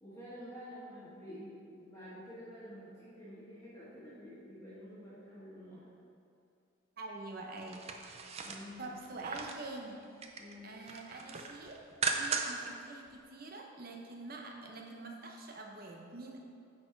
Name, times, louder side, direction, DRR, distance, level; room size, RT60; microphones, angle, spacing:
voice 1, 0.0-5.8 8.4-8.9 10.4-10.7, equal, 15° left, -11 dB, 1.7 m, -49 dB
voice 2, 7.0-7.8 8.8-10.0 10.6-16.4, right 2 dB, 45° right, 1 dB, 0.9 m, -46 dB
sound 1, 7.6-9.7 10.0-10.5 10.9-12.7 13.1-13.2, right 5 dB, 30° right, 0.5 m, -37 dB
9.7 x 4.5 x 4.6 m, 2.4 s
head